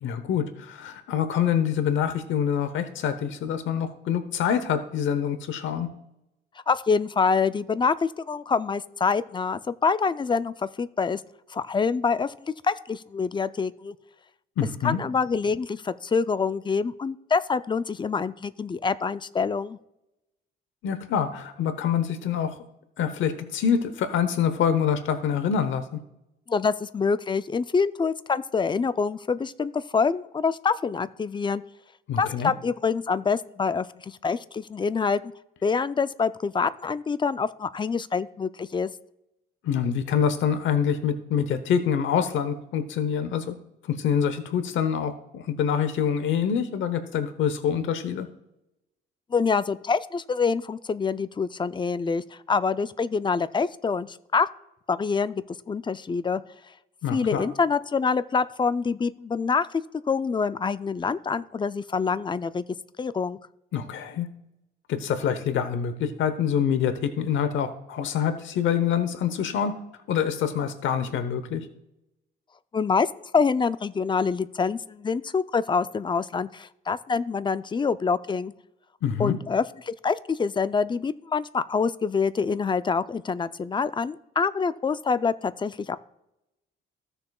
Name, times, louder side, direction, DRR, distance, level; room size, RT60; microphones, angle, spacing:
voice 1, 0.0-5.9 14.6-15.0 20.8-22.6 23.0-26.0 32.1-32.5 39.6-43.6 43.8-48.3 57.0-57.4 63.7-64.3 64.9-69.7 70.1-71.7 79.0-79.4, left 8 dB, 75° left, 10 dB, 0.9 m, -26 dB
voice 2, 6.7-11.2 11.5-14.0 14.8-19.8 26.5-31.6 32.2-35.2 35.6-38.9 49.3-54.5 54.9-56.4 57.1-59.7 60.1-62.6 63.0-63.4 72.7-78.5 79.2-86.0, left 5 dB, 25° left, 14 dB, 0.5 m, -26 dB
15.5 x 6.7 x 2.4 m, 0.86 s
cardioid pair, 90°, 20 cm